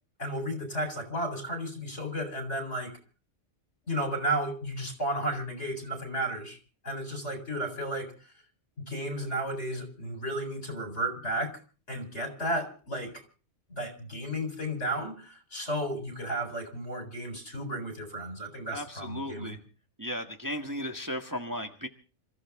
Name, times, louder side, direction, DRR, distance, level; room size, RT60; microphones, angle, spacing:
voice 1, 0.2-2.9 3.9-6.6 6.8-8.1 8.9-11.6 11.9-13.2 13.7-19.6, right 1 dB, 60° left, 5 dB, 4.8 m, -33 dB
voice 2, 18.7-19.6 20.0-21.9, equal, 15° right, 4 dB, 1.4 m, -35 dB
27.0 x 14.5 x 3.6 m, 0.38 s
omnidirectional pair, 1.3 m